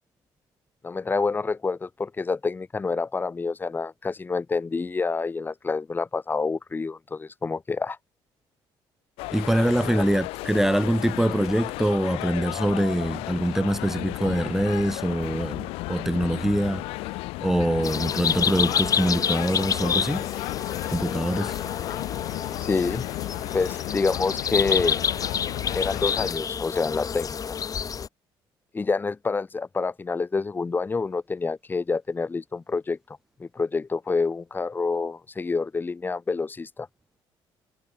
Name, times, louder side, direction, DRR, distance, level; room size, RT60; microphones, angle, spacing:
voice 1, 0.8-8.0 9.8-10.0 21.9-22.0 22.6-23.0 23.5-25.0 25.7-27.4 28.7-33.0 33.4-36.9, left 4 dB, 20° left, 0.7 m, -27 dB
sound 1, 9.2-26.3, left 22 dB, 90° left, 1.3 m, -33 dB
voice 2, 9.3-20.2 20.9-21.6, right 1 dB, 5° right, 1.9 m, -24 dB
sound 2, 16.8-22.6, left 14 dB, 70° left, 2.8 m, -44 dB
sound 3, 17.8-28.1, left 7 dB, 40° left, 1.4 m, -29 dB
cardioid pair, 100°, 9 cm